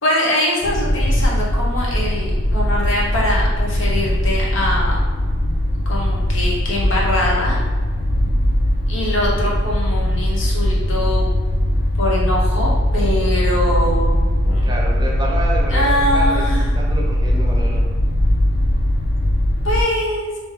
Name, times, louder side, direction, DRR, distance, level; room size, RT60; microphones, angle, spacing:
voice 1, 0.0-5.0 5.9-7.6 8.9-11.3 12.0-14.2 14.4-14.7 15.7-16.7 19.6-20.3, left 1 dB, 70° left, -4 dB, 1.0 m, -22 dB
sound 1, 0.6-19.8, left 1 dB, 45° left, 0.4 m, -19 dB
voice 2, 14.6-17.8, right 1 dB, 20° right, -2 dB, 0.5 m, -28 dB
3.5 x 3.0 x 3.2 m, 1.4 s
head